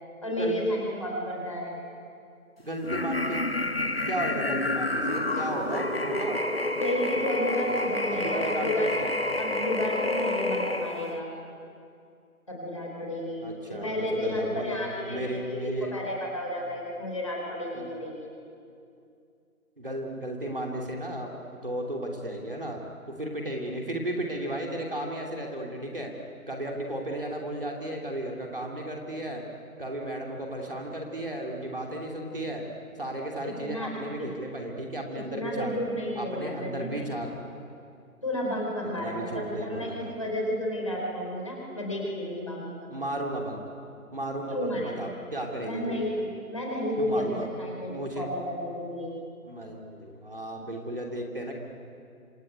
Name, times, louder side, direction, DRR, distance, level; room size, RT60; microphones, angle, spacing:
voice 1, 0.2-1.8 6.8-9.0 9.4-11.3 12.5-18.3 33.4-34.3 35.1-37.1 38.2-42.9 44.5-45.1 45.6-49.1, equal, 20° left, -1 dB, 4.2 m, -32 dB
voice 2, 2.6-3.4 4.1-6.4 8.1-9.1 13.4-14.8 15.1-16.0 17.7-17.9 19.8-21.3 21.6-22.8 23.2-26.1 26.5-29.4 29.8-32.6 33.0-35.7 36.2-37.3 39.0-40.1 42.9-43.6 44.1-46.0 47.0-47.5 47.8-48.3 49.4-51.6, right 1 dB, 40° right, 0 dB, 3.0 m, -34 dB
sound 1, 2.8-11.2, left 2 dB, 40° left, 1.3 m, -29 dB
27.0 x 23.0 x 9.4 m, 2.4 s
figure-of-eight pair, 180°, 44 cm